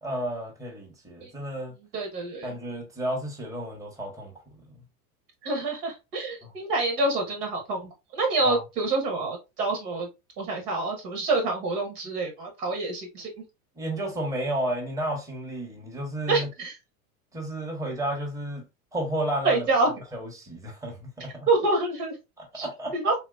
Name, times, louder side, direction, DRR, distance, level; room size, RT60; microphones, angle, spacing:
voice 1, 0.0-1.7 2.4-4.6 8.4-8.6 13.8-16.5 17.3-18.6 18.9-19.7 20.1-21.5 22.4-22.9, right 1 dB, 5° right, 0.9 m, -32 dB
voice 2, 1.9-2.5 5.4-10.1 10.4-13.3 16.3-16.7 19.4-20.0 21.5-22.2 22.5-22.7 22.9-23.1, right 2 dB, 85° right, 1.4 m, -27 dB
3.0 x 2.8 x 2.3 m
hypercardioid pair, 100°, 45 cm